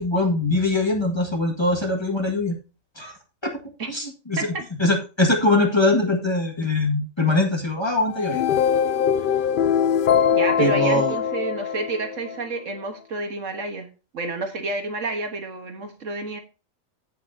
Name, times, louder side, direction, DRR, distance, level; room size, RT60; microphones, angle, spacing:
voice 1, 0.0-2.6 3.0-3.2 3.4-3.6 3.9-4.5 4.8-8.6 10.6-11.1, left 2 dB, 20° left, 1 dB, 1.8 m, -22 dB
sound 1, 8.1-12.4, left 8 dB, 75° left, 0.4 m, -22 dB
voice 2, 10.3-13.9 14.1-16.4, right 3 dB, 65° right, 6 dB, 1.6 m, -29 dB
15.0 x 5.8 x 2.7 m, 0.32 s
omnidirectional pair, 1.5 m